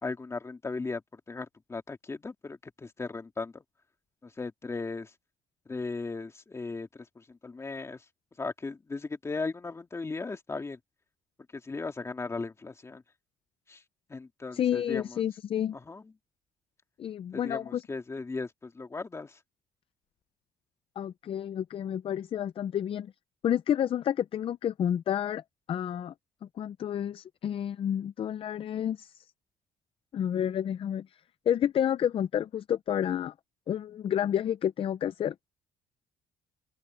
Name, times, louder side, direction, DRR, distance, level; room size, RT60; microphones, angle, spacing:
voice 1, 0.0-3.6 4.2-5.1 5.7-8.0 8.4-10.8 11.5-13.0 13.7-13.8 14.1-15.2 15.7-16.1 17.3-19.4, left 3 dB, 20° left, 2.3 m, -37 dB
voice 2, 14.5-15.8 17.0-17.8 21.0-23.1 23.4-25.4 25.7-26.1 26.6-29.2 30.1-31.1 31.5-33.3 33.7-35.3, left 10 dB, 40° left, 0.5 m, -30 dB
open air
cardioid pair, 135°, 14 cm